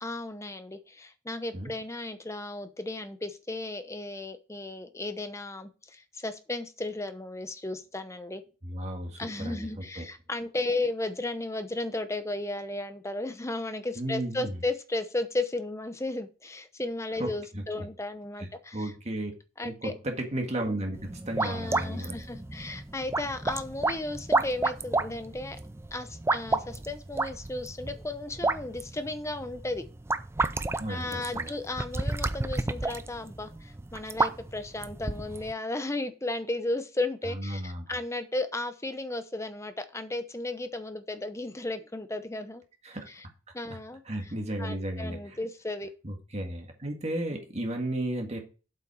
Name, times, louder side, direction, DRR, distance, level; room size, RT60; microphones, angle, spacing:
voice 1, 0.0-8.4 9.2-18.9 19.6-19.9 21.4-25.6 25.9-29.8 30.9-42.6 43.1-43.2 43.5-44.0 44.6-45.9 47.3-47.4, left 2 dB, 15° left, 10 dB, 0.8 m, -34 dB
voice 2, 8.6-10.0 14.0-14.6 17.2-17.9 18.4-19.3 19.6-22.1 30.8-31.5 37.3-37.8 42.8-43.1 43.7-43.8 44.1-45.4 46.0-48.4, right 1 dB, 35° right, 2 dB, 1.8 m, -34 dB
sound 1, 20.9-35.5, right 3 dB, 15° right, 0.4 m, -31 dB
8.0 x 5.6 x 4.9 m, 0.33 s
head